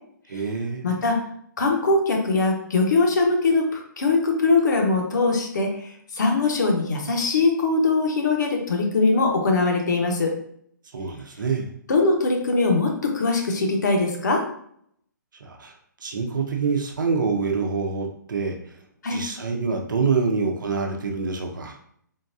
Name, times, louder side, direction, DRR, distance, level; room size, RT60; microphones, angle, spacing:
voice 1, 0.3-1.0 10.9-11.7 15.4-15.7 16.0-18.7 19.1-21.8, right 5 dB, 75° right, 3 dB, 0.7 m, -26 dB
voice 2, 0.8-1.2 1.6-10.3 11.9-14.4 19.0-19.2, left 3 dB, 65° left, 1 dB, 1.0 m, -21 dB
3.8 x 2.4 x 2.6 m, 0.66 s
hypercardioid pair, 160°, 11 cm